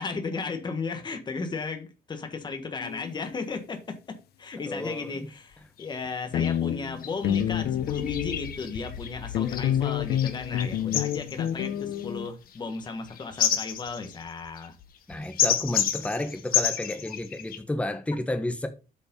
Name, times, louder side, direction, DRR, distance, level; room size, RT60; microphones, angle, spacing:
voice 1, 0.0-14.7, left 4 dB, 30° left, 1.5 m, -35 dB
sound 1, 2.8-3.1 6.1-6.2 6.3-8.7 9.3-12.3, left 10 dB, 90° left, 0.8 m, -28 dB
voice 2, 4.7-5.1 15.1-18.7, left 1 dB, 10° left, 1.1 m, -31 dB
sound 2, 5.5-5.6 5.8-5.9 6.4-6.6 7.0-17.6, left 9 dB, 65° left, 1.5 m, -31 dB
8.5 x 5.3 x 5.3 m
cardioid pair, 170°, 16 cm